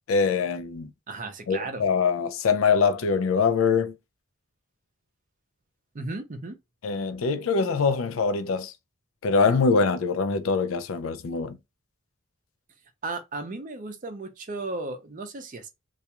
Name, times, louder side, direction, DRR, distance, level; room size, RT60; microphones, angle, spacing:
voice 1, 0.1-0.9 1.5-4.0 6.8-8.7 9.2-11.6, left 5 dB, 70° left, 0.4 m, -23 dB
voice 2, 1.1-1.8 5.9-6.6 13.0-15.7, right 3 dB, 40° right, 0.5 m, -35 dB
2.4 x 2.2 x 2.8 m
head